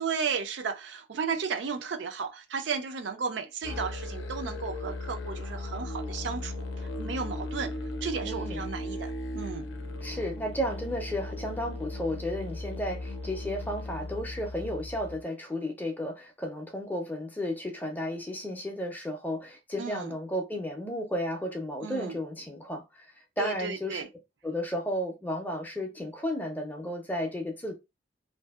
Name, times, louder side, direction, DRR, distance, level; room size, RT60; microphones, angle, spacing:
voice 1, 0.0-6.5 7.0-7.7 8.0-9.6 19.8-20.1 21.8-22.2 23.4-24.1, right 5 dB, 65° right, 0.4 m, -34 dB
Musical instrument, 3.6-15.2, left 1 dB, 80° left, 0.5 m, -37 dB
voice 2, 8.2-8.6 10.0-23.1 23.4-24.0 24.4-27.7, equal, 10° left, 0.5 m, -33 dB
2.6 x 2.6 x 2.3 m
head